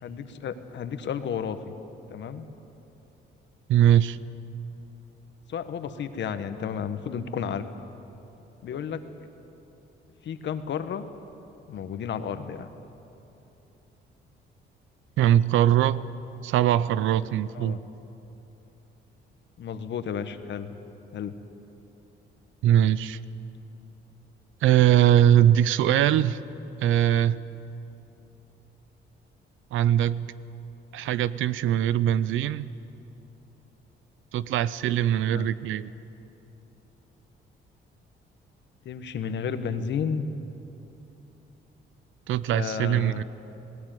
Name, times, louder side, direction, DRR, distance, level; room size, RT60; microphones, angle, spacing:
voice 1, 0.0-1.7 2.1-2.5 5.5-7.7 8.6-9.0 10.2-11.0 11.7-12.7 17.5-17.8 19.6-20.7 21.1-21.4 35.3-35.5 38.8-40.3 42.5-43.2, left 7 dB, 65° left, 10 dB, 1.3 m, -32 dB
voice 2, 3.7-4.2 15.2-16.1 16.4-17.8 22.6-23.2 24.6-26.4 26.8-27.4 29.7-30.3 30.9-32.7 34.3-35.9 42.3-43.2, right 11 dB, 85° right, 17 dB, 0.6 m, -21 dB
18.5 x 17.5 x 9.1 m, 3.0 s
cardioid pair, 90°, 20 cm